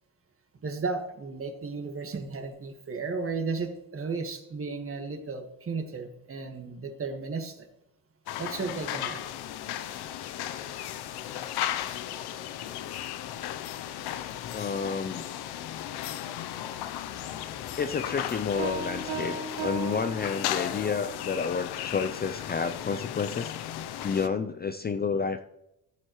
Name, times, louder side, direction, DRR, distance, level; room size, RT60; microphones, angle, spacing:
voice 1, 0.6-7.7 8.4-9.2, right 4 dB, 35° right, 5 dB, 1.7 m, -34 dB
sound 1, 8.3-24.3, left 11 dB, 75° left, 0.8 m, -35 dB
voice 2, 14.5-15.3 17.8-23.5 24.0-25.4, left 5 dB, 25° left, 9 dB, 0.5 m, -30 dB
sound 2, 18.6-21.0, right 4 dB, 75° right, 3.6 m, -36 dB
14.5 x 7.8 x 3.1 m, 0.86 s
cardioid pair, 90°, 39 cm